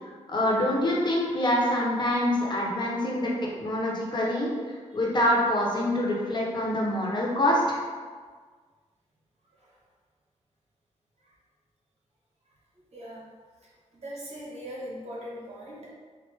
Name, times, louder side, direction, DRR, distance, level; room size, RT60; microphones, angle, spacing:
voice 1, 0.3-3.3 3.6-4.5 4.9-7.8, left 1 dB, 40° left, -3 dB, 0.9 m, -25 dB
voice 2, 12.9-13.2 13.9-15.9, equal, 60° right, -5 dB, 1.0 m, -40 dB
4.6 x 2.0 x 3.2 m, 1.5 s
cardioid pair, 95°, 12 cm